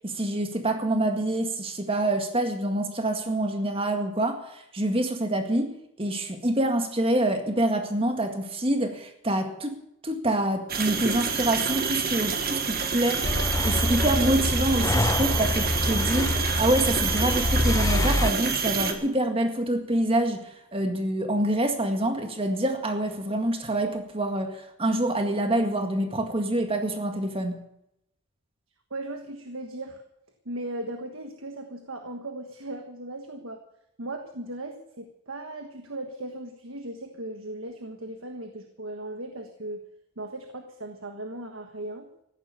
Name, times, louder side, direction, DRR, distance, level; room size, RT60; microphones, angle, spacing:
voice 1, 0.0-9.8 10.0-27.6, right 1 dB, 25° right, 5 dB, 2.0 m, -26 dB
sound 1, 10.7-18.9, right 5 dB, 45° right, 1.8 m, -28 dB
sound 2, 13.2-18.3, left 1 dB, 15° left, 0.5 m, -26 dB
voice 2, 28.9-30.0 30.4-33.6 34.0-39.8 40.2-42.1, right 1 dB, 65° right, 5 dB, 1.4 m, -37 dB
15.0 x 11.0 x 7.0 m, 0.80 s
head